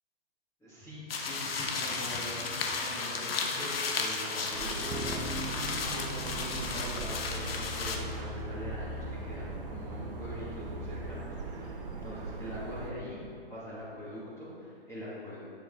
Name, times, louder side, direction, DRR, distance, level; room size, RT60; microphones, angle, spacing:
voice 1, 0.6-13.2 13.5-15.4, left 1 dB, 10° left, -10 dB, 2.8 m, -43 dB
sound 1, 1.1-8.0, left 4 dB, 70° left, 1.5 m, -34 dB
sound 2, 4.5-12.9, right 4 dB, 60° right, 1.8 m, -40 dB
sound 3, 4.9-11.2, left 1 dB, 10° right, 0.7 m, -41 dB
12.5 x 9.7 x 4.0 m, 2.4 s
hypercardioid pair, 135°, 31 cm